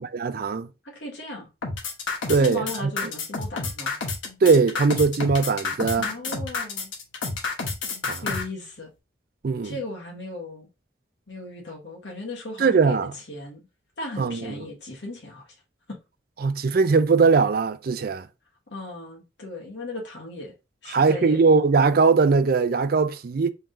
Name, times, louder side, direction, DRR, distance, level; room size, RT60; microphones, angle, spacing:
voice 1, 0.1-0.7 2.3-2.9 4.4-6.1 8.0-8.2 9.4-9.8 12.6-13.1 14.2-14.5 16.4-18.3 20.9-23.5, right 4 dB, 50° right, 0.4 m, -20 dB
voice 2, 0.8-1.5 2.4-4.0 5.9-6.9 8.2-8.9 9.6-10.7 11.3-13.7 14.0-15.5 15.9-16.0 18.7-20.5 20.8-21.4, left 2 dB, 65° left, 1.5 m, -36 dB
sound 1, 1.6-8.4, left 4 dB, 85° left, 1.1 m, -29 dB
4.5 x 3.6 x 2.5 m
head